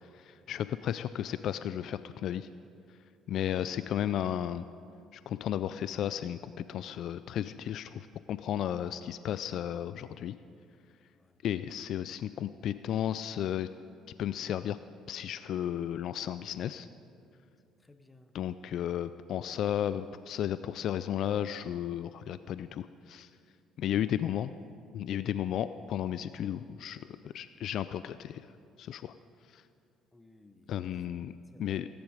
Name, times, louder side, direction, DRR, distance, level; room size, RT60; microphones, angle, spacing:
voice 1, 0.0-2.5 3.3-4.7 5.1-10.4 11.4-13.7 14.2-14.8 15.1-16.9 18.3-23.3 23.8-24.5 24.9-28.5 28.8-29.1 29.5-29.6 30.7-31.3 31.6-31.9, left 10 dB, 65° left, 13 dB, 0.3 m, -34 dB
voice 2, 17.8-18.3 30.1-30.8 31.5-31.8, left 2 dB, 15° left, 9 dB, 1.0 m, -59 dB
17.5 x 10.5 x 5.0 m, 2.4 s
supercardioid pair, 85°, 0 cm